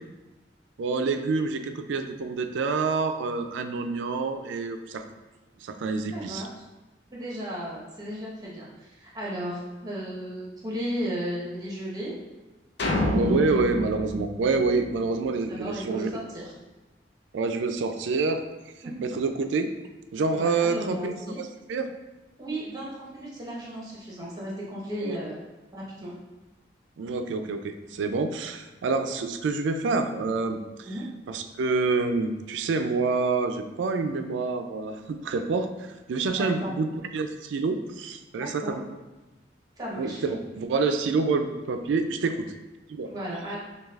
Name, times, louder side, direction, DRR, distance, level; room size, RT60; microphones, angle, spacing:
voice 1, 0.8-5.0 5.6-6.5 13.1-16.1 17.3-18.4 19.0-19.7 20.1-21.9 25.0-25.2 27.0-30.9 31.3-38.8 40.0-42.5 42.9-43.1, right 4 dB, 85° right, 7 dB, 0.3 m, -27 dB
voice 2, 6.1-6.5 7.1-12.1 13.0-13.5 15.5-16.5 18.8-19.1 20.3-21.4 22.4-25.4 25.7-26.1 30.8-31.0 36.4-36.7 38.4-38.8 39.8-40.2 43.1-43.6, equal, 20° right, -5 dB, 1.0 m, -35 dB
sound 1, 12.8-15.2, left 1 dB, 65° left, 0.6 m, -28 dB
6.2 x 2.3 x 2.4 m, 1.1 s
head